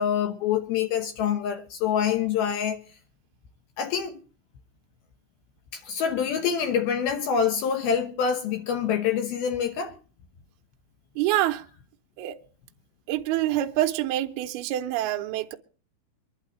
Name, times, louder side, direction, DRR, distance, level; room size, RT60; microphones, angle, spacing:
voice 1, 0.0-2.8 3.8-4.2 5.7-9.9, left 7 dB, 80° left, 2.2 m, -26 dB
voice 2, 11.2-11.6 12.2-12.4 13.1-15.6, right 14 dB, 85° right, 2.3 m, -26 dB
24.5 x 11.5 x 3.0 m
omnidirectional pair, 5.7 m